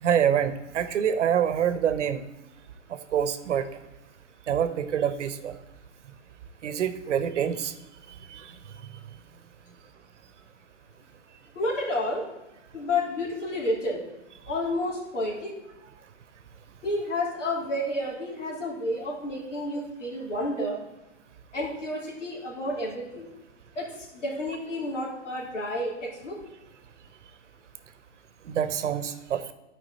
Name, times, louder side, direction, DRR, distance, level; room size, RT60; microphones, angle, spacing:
voice 1, 0.0-2.2 3.1-3.7 4.5-5.5 6.6-7.7 8.3-8.5 20.6-20.7 28.4-29.5, right 9 dB, 70° right, 12 dB, 0.9 m, -26 dB
voice 2, 11.5-12.2 12.7-14.0 14.5-15.5 16.8-20.8 21.5-23.3 23.7-26.4, left 1 dB, 80° left, -3 dB, 3.3 m, -30 dB
12.0 x 5.0 x 4.1 m, 1.0 s
hypercardioid pair, 150°, 36 cm